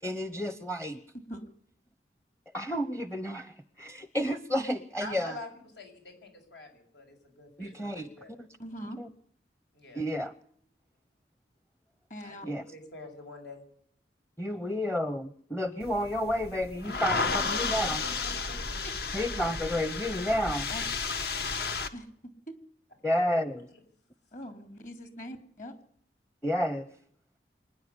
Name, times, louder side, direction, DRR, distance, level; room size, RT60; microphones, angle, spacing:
voice 1, 0.0-1.0 2.5-5.3 7.6-8.1 8.4-8.5 8.8-9.1 9.9-10.3 12.4-12.6 14.4-18.0 19.1-20.7 23.0-23.7 26.4-26.9, equal, 10° left, 13 dB, 0.8 m, -31 dB
voice 2, 5.0-8.3 9.7-10.0 12.2-13.6 14.8-14.9 16.8-17.9 18.5-18.6 21.4-21.5 23.3-23.4, left 2 dB, 75° left, 3 dB, 7.0 m, -45 dB
voice 3, 8.6-9.0 12.1-12.5 20.7-20.8 21.9-22.6 24.3-25.8, equal, 45° left, 8 dB, 3.2 m, -42 dB
sound 1, 15.8-21.9, left 4 dB, 60° left, 1.6 m, -32 dB
25.5 x 10.5 x 9.9 m, 0.63 s
head